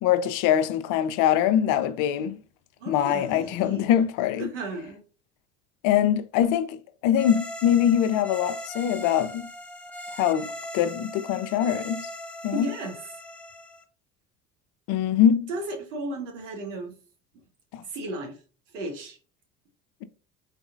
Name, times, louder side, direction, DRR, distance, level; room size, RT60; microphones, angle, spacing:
voice 1, 0.0-2.4 2.9-4.5 5.8-9.5 10.2-10.5 10.7-12.1 12.4-12.6 14.9-15.5 17.7-17.8, left 10 dB, 60° left, 0.6 m, -23 dB
voice 2, 2.8-3.9 4.4-5.0 12.5-13.0 15.5-16.9 17.9-18.4 18.7-19.2, right 1 dB, 90° right, 1.2 m, -34 dB
sound 1, 7.2-13.8, left 1 dB, 5° left, 0.7 m, -39 dB
4.0 x 3.5 x 2.4 m
hypercardioid pair, 75°, 36 cm